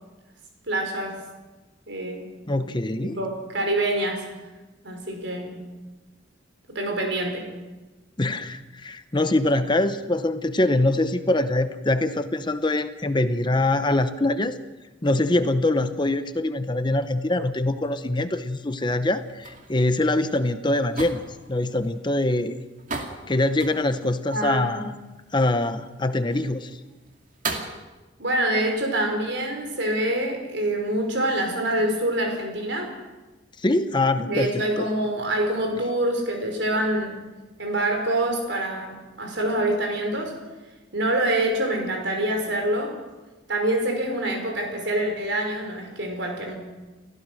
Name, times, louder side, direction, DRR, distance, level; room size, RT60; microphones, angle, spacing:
voice 1, 0.7-1.2 1.9-2.3 3.0-4.2 4.8-5.6 6.7-7.5 24.3-24.8 28.2-32.9 34.2-37.2 37.6-40.4 40.9-43.0 43.5-46.5, right 1 dB, 70° right, 2 dB, 5.5 m, -26 dB
voice 2, 2.5-3.2 8.2-14.5 15.0-21.2 21.5-22.6 23.3-24.9 25.3-26.7 33.6-34.9, left 2 dB, 25° left, 10 dB, 0.8 m, -23 dB
sound 1, 19.0-27.8, right 3 dB, 45° right, 2.4 m, -38 dB
29.0 x 15.5 x 6.4 m, 1.2 s
head